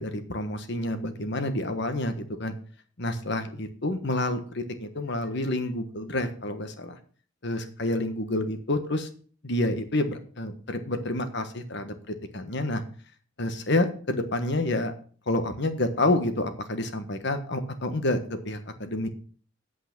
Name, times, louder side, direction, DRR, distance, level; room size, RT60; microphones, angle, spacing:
voice 1, 0.0-2.5 3.0-7.0 7.4-9.1 9.4-12.8 13.4-14.9 15.3-18.2 18.4-19.1, left 1 dB, 60° left, 8 dB, 1.4 m, -28 dB
8.4 x 7.9 x 6.1 m, 0.43 s
head